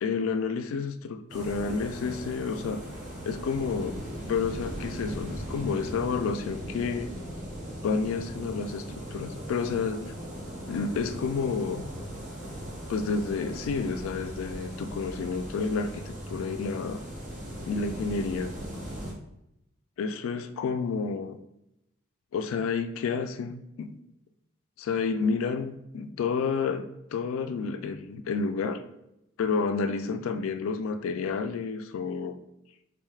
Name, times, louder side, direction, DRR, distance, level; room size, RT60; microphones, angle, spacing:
voice 1, 0.0-2.8 3.2-4.0 4.3-7.1 7.8-10.0 10.7-11.8 12.9-17.0 17.7-18.5 20.0-21.4 22.3-24.0 24.8-28.8 29.4-32.3, left 5 dB, 85° left, 10 dB, 0.3 m, -30 dB
sound 1, 1.3-19.1, equal, 40° right, 0.8 m, -38 dB
3.6 x 3.2 x 2.3 m, 0.85 s
head